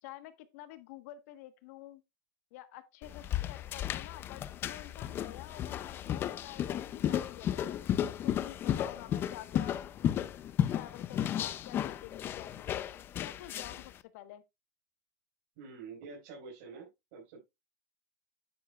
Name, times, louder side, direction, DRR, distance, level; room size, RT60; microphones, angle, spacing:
voice 1, 0.0-2.0 2.5-7.8 8.2-9.8 10.7-12.7 13.2-14.4, left 14 dB, 60° left, 1.4 m, -49 dB
sound 1, 3.0-13.9, left 10 dB, 25° left, 0.5 m, -34 dB
voice 2, 15.6-17.4, right 4 dB, 55° right, 4.9 m, -47 dB
9.8 x 9.6 x 2.4 m
supercardioid pair, 165°, 9 cm